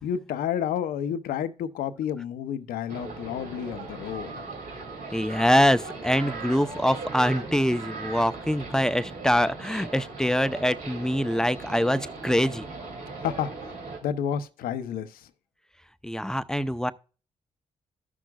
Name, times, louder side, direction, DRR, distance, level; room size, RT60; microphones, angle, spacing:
voice 1, 0.0-4.4 13.2-13.5 14.0-15.3, left 9 dB, 85° left, 0.6 m, -30 dB
sound 1, 2.9-14.0, right 3 dB, 75° right, 2.5 m, -38 dB
voice 2, 5.1-12.7 16.0-16.9, equal, 5° left, 0.6 m, -24 dB
14.5 x 6.1 x 2.3 m
supercardioid pair, 45°, 14 cm